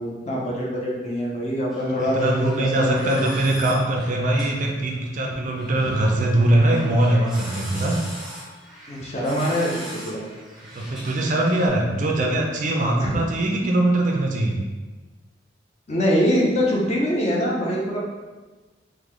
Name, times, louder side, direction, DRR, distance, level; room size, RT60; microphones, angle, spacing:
voice 1, 0.0-3.3 8.9-10.2 13.0-13.1 15.9-18.0, equal, 40° left, -3 dB, 0.7 m, -24 dB
sound 1, 1.7-11.7, equal, 5° right, 0.7 m, -40 dB
voice 2, 2.1-8.0 10.7-14.6, right 1 dB, 45° right, 1 dB, 0.4 m, -21 dB
3.7 x 2.2 x 3.1 m, 1.3 s
head